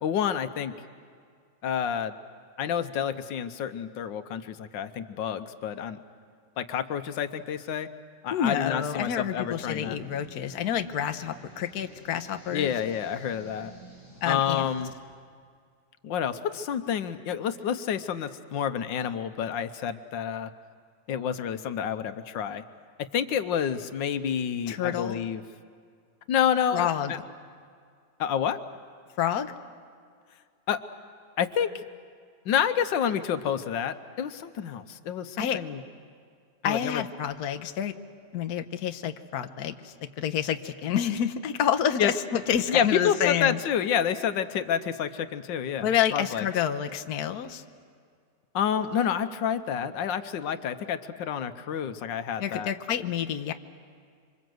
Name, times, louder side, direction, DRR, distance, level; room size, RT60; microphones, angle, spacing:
voice 1, 0.0-0.7 1.6-2.1 2.6-6.0 6.6-7.9 8.2-10.0 12.5-13.7 14.2-14.9 16.0-20.5 21.1-22.6 23.1-25.4 26.3-27.2 28.2-28.6 30.7-30.8 31.4-31.8 32.4-35.8 36.6-37.0 42.0-42.1 42.7-46.5 48.5-52.7, left 8 dB, 85° left, 10 dB, 1.6 m, -29 dB
voice 2, 8.3-12.7 14.2-14.7 24.7-25.3 26.7-27.1 29.2-29.5 35.4-35.6 36.6-37.9 38.3-43.6 45.8-47.6 52.4-53.5, left 9 dB, 65° left, 7 dB, 1.4 m, -28 dB
sound 1, 9.5-15.0, equal, 40° right, 8.3 m, -50 dB
27.0 x 25.5 x 7.8 m, 2.1 s
omnidirectional pair, 1.9 m